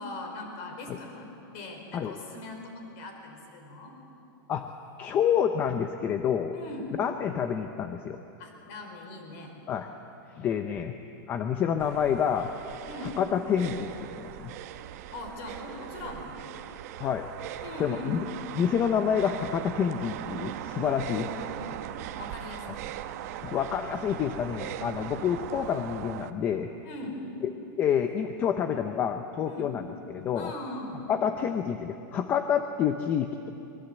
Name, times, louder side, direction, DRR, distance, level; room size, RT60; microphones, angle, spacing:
voice 1, 0.0-3.9 6.5-6.9 8.4-9.5 12.9-13.2 15.1-16.4 17.6-18.2 21.1-21.9 22.1-23.0 26.8-27.2 29.5-29.7 30.3-31.1, left 2 dB, 35° left, 3 dB, 4.6 m, -40 dB
voice 2, 4.5-6.5 7.0-8.2 9.7-9.9 10.4-11.0 11.3-12.5 13.2-14.5 17.0-17.3 17.8-18.2 18.5-21.3 23.4-26.7 27.8-30.5 31.1-33.5, left 8 dB, 15° left, 7 dB, 0.6 m, -28 dB
sound 1, 11.8-26.3, right 12 dB, 45° right, 0.9 m, -40 dB
25.0 x 22.0 x 8.0 m, 2.9 s
supercardioid pair, 175°, 12 cm